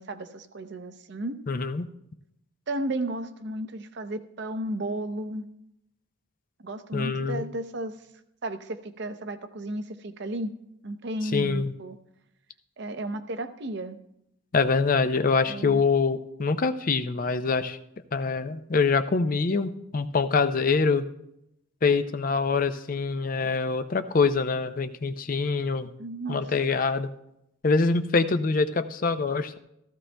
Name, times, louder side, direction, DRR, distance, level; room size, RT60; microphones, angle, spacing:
voice 1, 0.0-1.4 2.7-5.5 6.6-8.0 8.4-10.5 10.8-12.0 12.8-14.0 15.5-15.8 23.4-23.5 26.0-26.4, right 1 dB, 50° right, 8 dB, 0.6 m, -33 dB
voice 2, 1.5-1.8 6.9-7.5 11.2-11.7 14.5-17.8 18.1-21.1 21.8-25.9 26.3-27.1 27.6-29.6, left 4 dB, 40° left, 10 dB, 0.4 m, -25 dB
15.0 x 14.0 x 2.2 m, 0.82 s
head